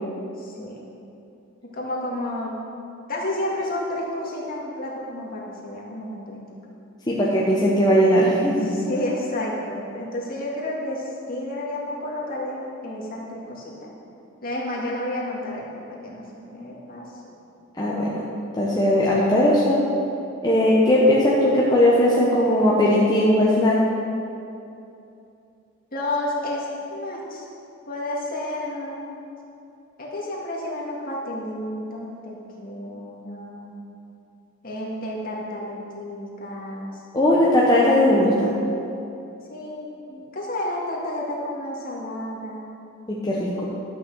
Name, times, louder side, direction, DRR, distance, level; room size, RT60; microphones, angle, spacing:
voice 1, 0.4-0.8 1.6-2.6 3.1-6.4 8.7-13.9 14.4-17.1 19.1-19.4 25.9-27.5 27.9-29.2 30.0-33.8 34.6-37.0 39.5-42.7, left 1 dB, 45° left, -4 dB, 2.1 m, -31 dB
voice 2, 7.1-8.9 17.8-18.2 18.5-19.8 20.4-23.8 37.1-38.5 43.1-43.6, left 1 dB, 20° left, -6 dB, 1.0 m, -18 dB
11.5 x 6.3 x 6.1 m, 2.7 s
head